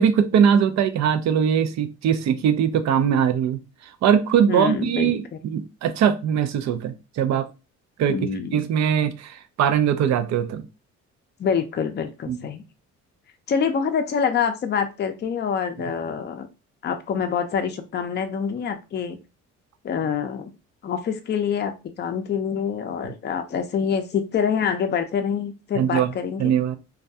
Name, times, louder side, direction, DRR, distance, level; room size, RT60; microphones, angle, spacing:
voice 1, 0.0-3.6 4.0-7.5 8.0-8.2 8.5-10.6 12.3-12.4 25.7-26.1 26.4-26.8, right 8 dB, 65° right, 11 dB, 0.5 m, -21 dB
voice 2, 4.5-5.1 8.1-8.7 11.4-12.6 13.5-16.5 16.8-19.2 19.8-20.5 20.8-21.7 22.0-26.5, left 7 dB, 35° left, 7 dB, 0.5 m, -26 dB
2.3 x 2.2 x 2.6 m, 0.29 s
cardioid pair, 90°, 30 cm